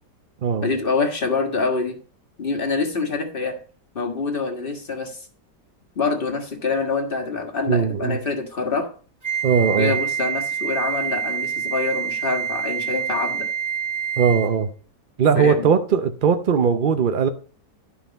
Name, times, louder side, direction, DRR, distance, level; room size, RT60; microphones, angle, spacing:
voice 1, 0.6-2.0 2.4-3.5 3.9-5.2 5.9-8.9 9.8-13.5 15.3-15.7, left 4 dB, 35° left, 1.7 m, -25 dB
voice 2, 7.7-8.2 9.4-9.9 14.2-14.7 15.2-17.3, right 6 dB, 65° right, 0.5 m, -19 dB
Wind instrument woodwind instrument, 9.2-14.6, right 7 dB, 15° right, 1.7 m, -27 dB
11.5 x 5.7 x 5.2 m
omnidirectional pair, 1.8 m